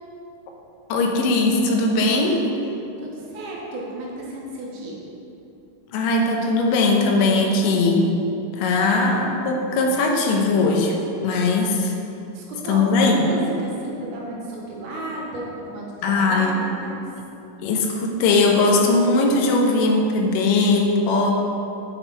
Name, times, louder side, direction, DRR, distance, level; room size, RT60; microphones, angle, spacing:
voice 1, 0.9-2.5 5.9-8.1 8.6-11.0 11.2-11.9 12.7-13.4 16.0-16.5 17.6-21.4, left 3 dB, 90° left, 2 dB, 2.4 m, -19 dB
voice 2, 3.0-5.0 12.3-17.0, right 1 dB, 75° right, -3 dB, 2.5 m, -32 dB
6.8 x 6.3 x 4.4 m, 2.8 s
omnidirectional pair, 3.7 m